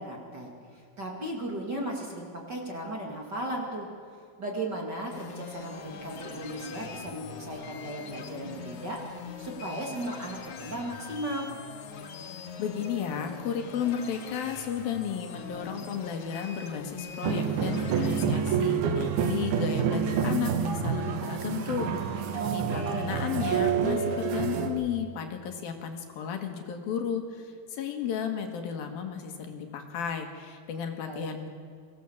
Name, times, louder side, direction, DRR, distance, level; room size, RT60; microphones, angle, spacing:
voice 1, 0.0-3.9 4.4-9.0 9.4-11.5 22.4-23.1 31.0-31.3, right 1 dB, 30° right, 0 dB, 2.5 m, -36 dB
sound 1, 5.1-18.3, left 6 dB, 60° left, 2.7 m, -42 dB
voice 2, 12.6-31.5, left 7 dB, 75° left, 5 dB, 3.4 m, -33 dB
sound 2, 17.2-24.7, right 7 dB, 90° right, 3.5 m, -28 dB
23.5 x 16.5 x 7.2 m, 2.3 s
omnidirectional pair, 4.3 m